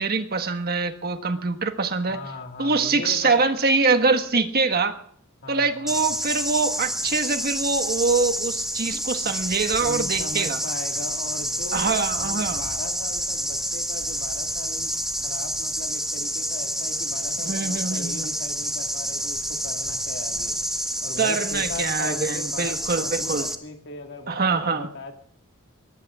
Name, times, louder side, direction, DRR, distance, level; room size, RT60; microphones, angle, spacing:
voice 1, 0.0-2.2 2.6-5.0 5.5-10.6 11.7-12.6 17.4-18.3 21.2-23.5 24.3-24.9, right 4 dB, 45° right, 7 dB, 1.5 m, -24 dB
voice 2, 2.1-3.5 5.4-6.1 9.2-9.3 9.8-14.9 15.2-20.6 21.0-25.1, left 3 dB, 55° left, 3 dB, 2.0 m, -38 dB
sound 1, 5.9-23.5, right 1 dB, ahead, 1.4 m, -28 dB
23.0 x 19.5 x 2.5 m, 0.62 s
head